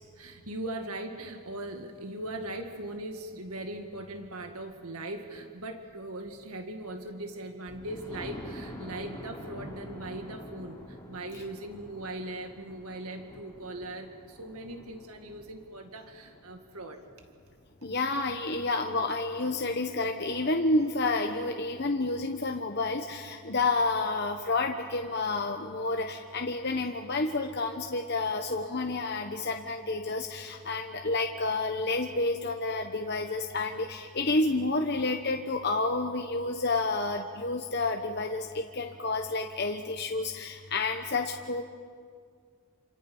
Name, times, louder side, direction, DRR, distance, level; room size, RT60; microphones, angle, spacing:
voice 1, 0.1-17.0, right 1 dB, 90° right, 5 dB, 2.0 m, -39 dB
Thunder, 7.7-17.4 18.0-18.1 18.5-18.6 18.8-18.9, left 1 dB, 15° left, 3.6 m, -47 dB
voice 2, 17.8-41.6, left 3 dB, 50° left, 3 dB, 1.0 m, -30 dB
29.0 x 27.0 x 5.5 m, 2.1 s
head